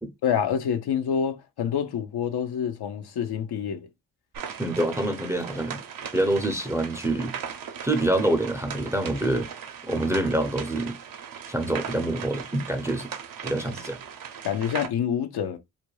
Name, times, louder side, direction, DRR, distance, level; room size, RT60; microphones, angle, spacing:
voice 1, 0.2-3.9 14.4-15.6, left 8 dB, 65° left, 0.6 m, -27 dB
sound 1, 4.3-14.9, right 7 dB, 50° right, 0.6 m, -38 dB
voice 2, 4.6-5.8 6.1-7.4 7.8-9.5 9.9-11.0 11.5-13.1 13.4-14.0, right 1 dB, 5° right, 0.6 m, -26 dB
2.5 x 2.1 x 3.0 m
supercardioid pair, 50°, 43 cm